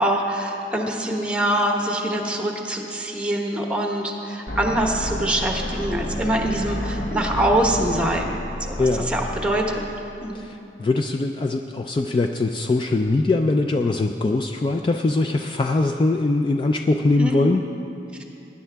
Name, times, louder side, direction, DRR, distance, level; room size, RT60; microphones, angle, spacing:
voice 1, 0.0-9.6 10.2-10.4 17.2-17.4, right 1 dB, 5° right, 1 dB, 1.0 m, -24 dB
sound 1, 4.5-10.4, left 1 dB, 50° left, 0.8 m, -31 dB
voice 2, 8.8-9.1 10.3-17.6, left 2 dB, 25° left, 5 dB, 0.3 m, -22 dB
19.0 x 10.0 x 3.5 m, 2.8 s
head